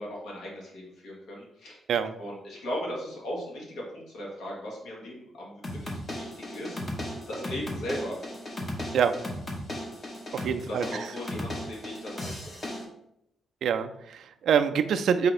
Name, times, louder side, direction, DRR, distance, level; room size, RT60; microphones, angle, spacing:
voice 1, 0.0-1.8 2.2-6.8 7.3-8.1 10.6-12.6, equal, 80° left, -3 dB, 1.5 m, -37 dB
sound 1, 5.6-12.8, left 1 dB, 25° left, 0.7 m, -36 dB
voice 2, 10.3-10.9 13.6-15.3, right 7 dB, 70° right, 9 dB, 0.3 m, -25 dB
4.3 x 2.8 x 4.0 m, 0.80 s
cardioid pair, 150°, 0 cm